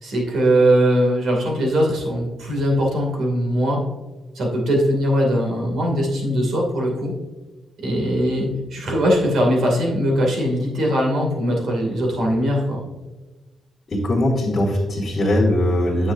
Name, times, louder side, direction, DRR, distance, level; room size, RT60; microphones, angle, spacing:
voice 1, 0.0-3.8 4.3-7.1 7.8-12.8, equal, 70° right, 0 dB, 2.6 m, -20 dB
voice 2, 13.9-16.1, left 1 dB, 30° left, -10 dB, 2.2 m, -20 dB
9.7 x 7.4 x 2.7 m, 1.2 s
wide cardioid pair, 155°, 0 cm